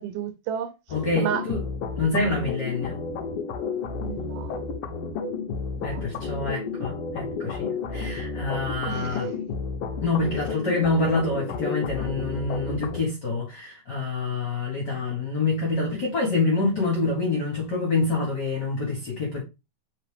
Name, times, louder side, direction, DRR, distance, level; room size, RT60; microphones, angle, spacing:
voice 1, 0.0-0.7 1.2-1.5 4.0-4.5 5.8-6.1 8.9-9.4, right 9 dB, 90° right, 2.3 m, -32 dB
sound 1, 0.9-13.0, left 4 dB, 85° left, 1.3 m, -32 dB
voice 2, 0.9-1.6 2.0-3.0 5.8-9.3 10.0-19.4, left 3 dB, 55° left, 1.2 m, -26 dB
4.5 x 3.3 x 3.4 m
omnidirectional pair, 3.6 m